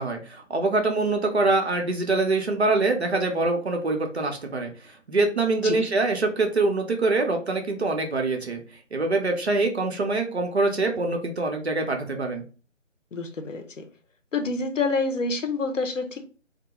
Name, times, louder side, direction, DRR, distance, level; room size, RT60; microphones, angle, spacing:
voice 1, 0.0-4.7 5.1-8.6 8.9-12.4, right 3 dB, 55° right, 3 dB, 0.6 m, -24 dB
voice 2, 13.1-13.8 14.3-16.3, left 3 dB, 75° left, 6 dB, 0.7 m, -27 dB
2.3 x 2.0 x 2.9 m, 0.37 s
figure-of-eight pair, 160°, 38 cm